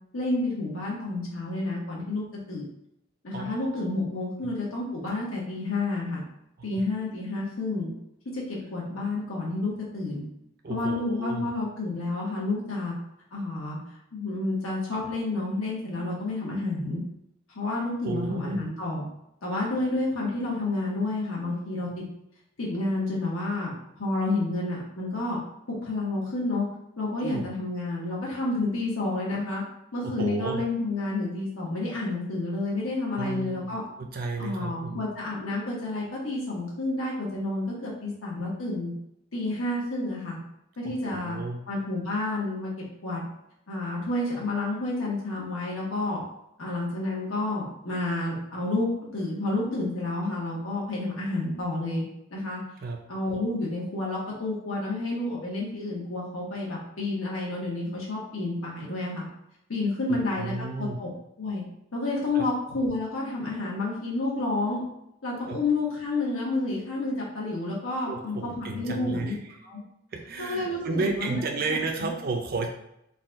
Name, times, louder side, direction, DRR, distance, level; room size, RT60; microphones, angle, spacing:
voice 1, 0.1-2.6 3.2-6.2 6.6-7.9 8.3-10.2 10.7-12.9 13.3-13.8 14.1-17.0 17.5-19.1 19.4-22.0 22.6-25.4 25.7-26.6 27.0-29.6 29.9-33.8 34.4-38.9 39.3-40.4 40.8-41.4 41.7-42.7 43.0-43.3 43.7-46.2 46.6-52.0 52.3-52.6 53.1-59.2 59.7-61.1 61.4-61.6 61.9-64.8 65.2-69.4 69.6-69.8 70.4-72.1, left 2 dB, 90° left, -4 dB, 1.2 m, -30 dB
voice 2, 3.3-4.0 10.6-11.5 18.0-18.6 27.2-27.5 30.0-30.6 33.1-35.0 40.8-41.6 52.8-53.0 60.1-61.0 62.3-62.4 65.5-65.6 68.1-69.5 70.1-72.7, right 3 dB, 45° right, 2 dB, 0.4 m, -33 dB
4.0 x 2.3 x 3.9 m, 0.80 s
head